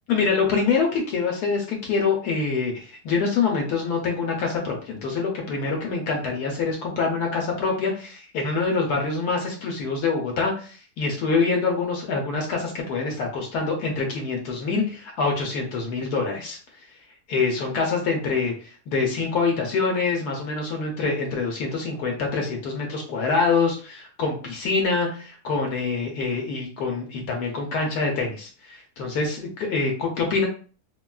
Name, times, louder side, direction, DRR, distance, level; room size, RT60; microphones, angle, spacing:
voice 1, 0.1-16.6 17.3-30.5, left 4 dB, 75° left, 1 dB, 1.1 m, -25 dB
3.4 x 2.2 x 2.3 m, 0.40 s
omnidirectional pair, 1.7 m